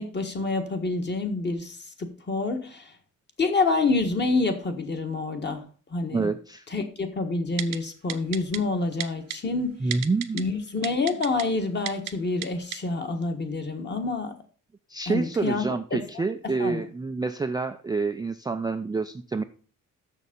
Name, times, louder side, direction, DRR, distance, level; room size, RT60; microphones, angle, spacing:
voice 1, 0.0-2.9 3.4-5.6 5.9-6.3 6.7-9.8 10.3-14.3 15.1-15.6 15.9-16.0 16.6-16.8, left 3 dB, 30° left, 5 dB, 1.5 m, -27 dB
voice 2, 6.1-6.7 9.8-10.4 14.9-19.4, right 4 dB, 10° right, 7 dB, 0.4 m, -28 dB
Typing, 7.6-7.8 8.1-8.6 9.0-9.4 9.9-10.4 10.8-11.4 11.9-12.1 12.4-12.5 12.7-12.8, right 11 dB, 70° right, 0.8 m, -31 dB
6.7 x 6.4 x 5.3 m, 0.40 s
cardioid pair, 115°, 34 cm